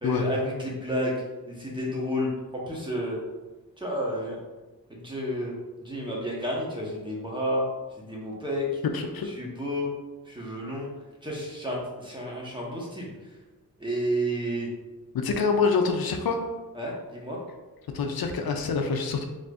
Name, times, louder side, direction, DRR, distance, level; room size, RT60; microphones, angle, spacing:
voice 1, 0.0-1.1 1.5-3.2 3.8-4.4 4.9-5.5 5.8-7.6 8.0-8.8 9.2-9.9 10.3-10.9 11.2-13.1 13.8-14.7 16.7-17.4, equal, 15° right, -3 dB, 1.1 m, -31 dB
voice 2, 8.9-9.3 15.1-16.4 17.9-19.3, left 5 dB, 80° left, 5 dB, 0.5 m, -26 dB
4.2 x 3.2 x 2.4 m, 1.2 s
wide cardioid pair, 75°, 36 cm